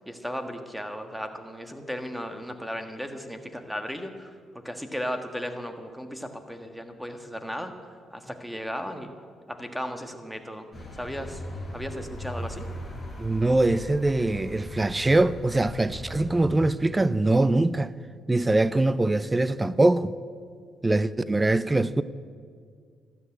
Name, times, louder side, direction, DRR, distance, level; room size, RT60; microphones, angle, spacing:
voice 1, 0.1-7.7 8.1-9.1 9.5-10.7 11.0-11.4 11.7-12.6, equal, ahead, 1.5 m, -35 dB
Vehicle, 10.7-17.1, equal, 15° left, 4.8 m, -39 dB
voice 2, 13.2-17.9 18.3-20.1 20.8-22.0, right 2 dB, 15° right, 0.5 m, -23 dB
13.0 x 12.5 x 8.9 m
cardioid pair, 90°, 0 cm